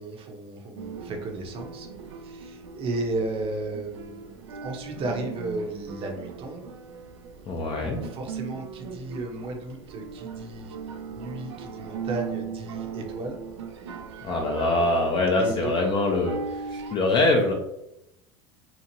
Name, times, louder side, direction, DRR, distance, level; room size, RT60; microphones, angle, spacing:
voice 1, 0.0-1.9 2.2-6.7 7.8-10.8 11.1-13.4 15.4-15.7, right 2 dB, 40° right, 3 dB, 0.8 m, -34 dB
sound 1, 0.8-17.0, right 6 dB, 90° right, 0.4 m, -39 dB
voice 2, 7.5-8.0 14.2-17.5, left 2 dB, 35° left, 1 dB, 0.5 m, -24 dB
2.9 x 2.4 x 2.7 m, 0.83 s
hypercardioid pair, 100°, 14 cm